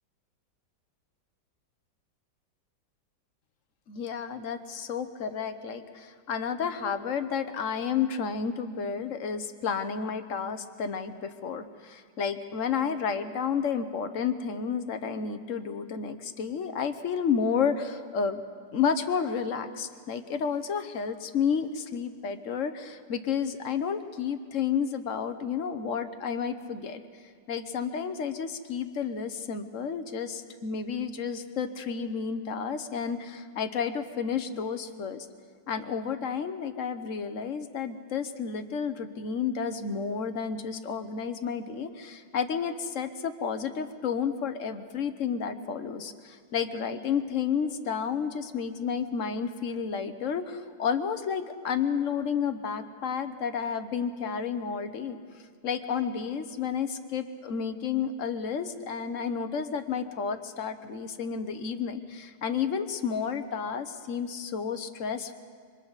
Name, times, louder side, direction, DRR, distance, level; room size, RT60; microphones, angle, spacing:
voice 1, 3.9-18.4 18.7-27.0 27.5-35.3 35.7-55.2 55.6-65.3, left 6 dB, 50° left, 9 dB, 1.1 m, -31 dB
27.0 x 24.5 x 4.1 m, 2.1 s
omnidirectional pair, 2.0 m